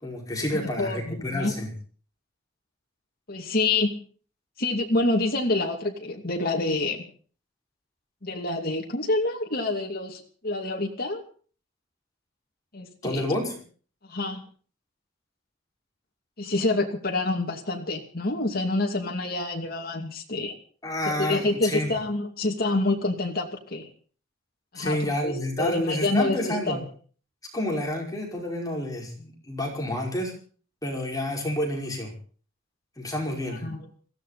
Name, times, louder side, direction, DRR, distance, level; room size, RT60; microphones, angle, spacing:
voice 1, 0.0-1.7 13.0-13.5 20.8-22.0 24.8-26.8 27.5-30.3 30.8-32.1 33.0-33.7, left 1 dB, 20° left, -1 dB, 5.3 m, -29 dB
voice 2, 0.5-1.5 3.3-3.9 4.6-7.0 8.2-11.2 12.7-13.2 14.1-14.4 16.4-20.5 21.1-23.9 24.7-26.8 33.6-33.9, left 2 dB, 50° left, 1 dB, 2.7 m, -27 dB
21.5 x 16.0 x 4.2 m, 0.42 s
head